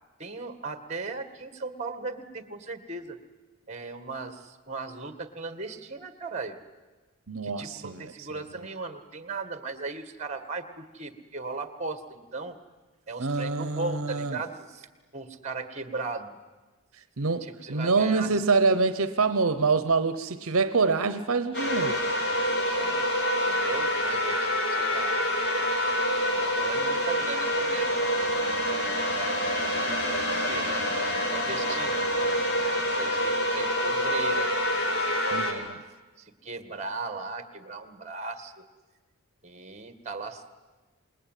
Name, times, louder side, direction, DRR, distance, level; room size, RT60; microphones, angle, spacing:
voice 1, 0.2-3.2 3.7-6.6 7.4-12.6 13.1-14.9 15.1-16.4 17.4-18.4 22.7-23.1 23.4-25.2 26.2-28.7 29.1-32.5 32.9-35.7 36.2-38.6 39.4-40.5, right 3 dB, 30° right, 9 dB, 1.8 m, -37 dB
voice 2, 7.3-8.3 13.2-14.4 17.2-22.0 35.3-35.6, right 4 dB, 70° right, 11 dB, 0.9 m, -26 dB
sound 1, 21.5-35.5, equal, 50° left, 3.6 m, -27 dB
28.0 x 20.5 x 9.2 m, 1.2 s
head